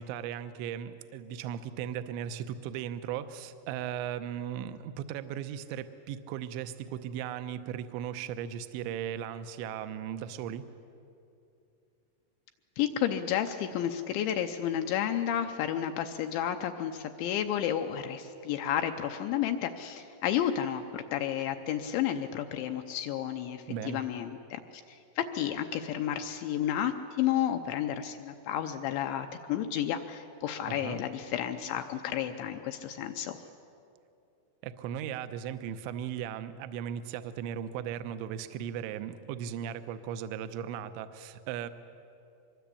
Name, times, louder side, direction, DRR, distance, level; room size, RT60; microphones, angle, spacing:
voice 1, 0.0-10.7 23.7-24.0 30.7-31.0 34.6-41.7, right 9 dB, 80° right, 10 dB, 2.9 m, -37 dB
voice 2, 12.8-24.6 24.9-33.4, left 10 dB, 80° left, 6 dB, 2.8 m, -31 dB
24.5 x 22.5 x 8.4 m, 2.6 s
omnidirectional pair, 5.8 m